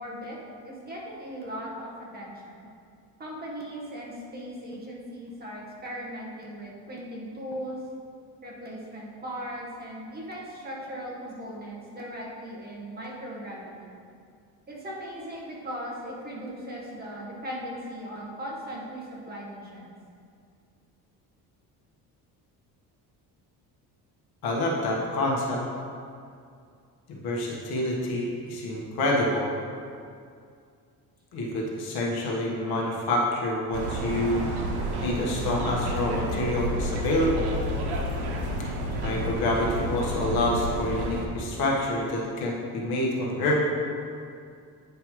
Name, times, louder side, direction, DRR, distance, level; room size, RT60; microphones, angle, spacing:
voice 1, 0.0-2.7 3.2-7.8 8.4-14.0 14.7-19.9, equal, 25° right, -5 dB, 1.4 m, -38 dB
voice 2, 24.4-25.6 27.1-29.5 31.3-34.5 35.0-37.5 38.6-38.7 39.0-43.6, left 1 dB, 70° left, -3 dB, 1.5 m, -27 dB
sound 1, 33.7-41.2, equal, 85° right, 1.1 m, -30 dB
9.3 x 5.6 x 3.1 m, 2.3 s
cardioid pair, 145°, 38 cm